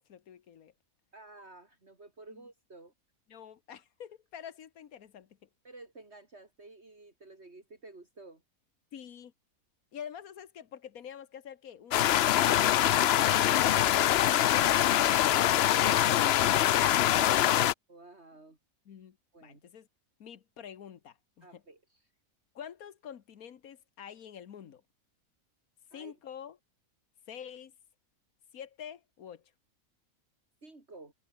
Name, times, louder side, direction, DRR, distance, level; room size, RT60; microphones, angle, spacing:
voice 1, 0.1-0.7 2.3-2.4 3.3-5.3 8.9-9.3 9.9-14.7 18.9-19.2 19.4-19.9 20.2-21.6 22.5-24.8 25.9-26.6 27.3-27.7 28.5-29.4, left 8 dB, 90° left, 1.6 m, -47 dB
voice 2, 1.1-2.9 5.6-8.4 17.9-18.6 19.3-19.6 21.4-22.1 25.9-26.2 30.6-31.1, right 2 dB, 50° right, 4.2 m, -52 dB
sound 1, 11.9-17.7, left 12 dB, 65° left, 0.7 m, -24 dB
omnidirectional pair, 1.5 m